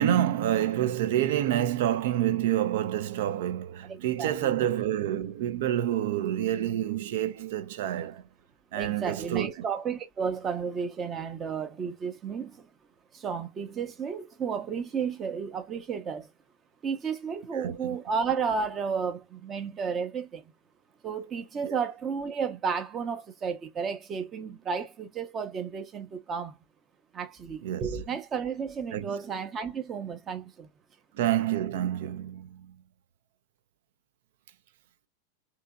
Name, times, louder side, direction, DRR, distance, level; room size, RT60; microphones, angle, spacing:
voice 1, 0.0-8.2 8.7-9.5 17.5-18.0 21.7-21.8 27.6-28.0 28.9-29.1 31.1-32.6, right 11 dB, 55° right, 0.4 m, -28 dB
voice 2, 3.8-4.7 8.7-12.7 13.1-16.3 16.8-20.4 21.0-26.6 27.1-30.7, right 6 dB, 25° right, 0.7 m, -32 dB
3.6 x 2.9 x 2.3 m
figure-of-eight pair, 90°, 0 cm